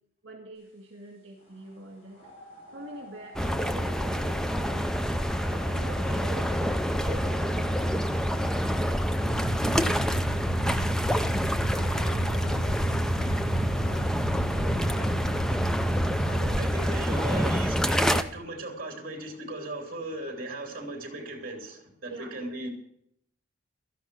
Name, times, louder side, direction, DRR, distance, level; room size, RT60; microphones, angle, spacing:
voice 1, 0.2-2.2 2.7-5.0 5.5-8.0 11.7-15.5 16.3-18.0 22.1-22.4, right 2 dB, 60° right, 0 dB, 2.4 m, -45 dB
sound 1, 2.2-16.6, right 1 dB, 30° left, 7.1 m, -36 dB
sound 2, 3.4-18.2, equal, 5° left, 0.4 m, -27 dB
voice 2, 16.6-22.7, right 2 dB, 40° right, 2 dB, 3.1 m, -37 dB
13.5 x 10.0 x 6.2 m, 0.71 s
head